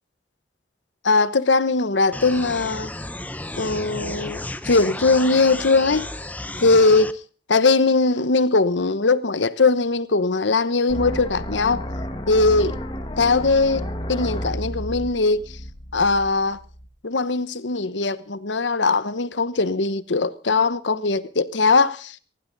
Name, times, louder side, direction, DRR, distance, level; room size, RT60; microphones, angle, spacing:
voice 1, 1.0-2.9 3.5-6.1 6.6-7.1 7.5-11.8 12.3-12.8 13.2-15.5 15.9-16.6 17.0-22.2, left 3 dB, 90° left, 1.0 m, -20 dB
sound 1, 2.1-7.1, left 1 dB, 10° left, 0.7 m, -33 dB
sound 2, 10.9-16.9, equal, 25° left, 1.7 m, -32 dB
20.0 x 16.0 x 4.0 m
head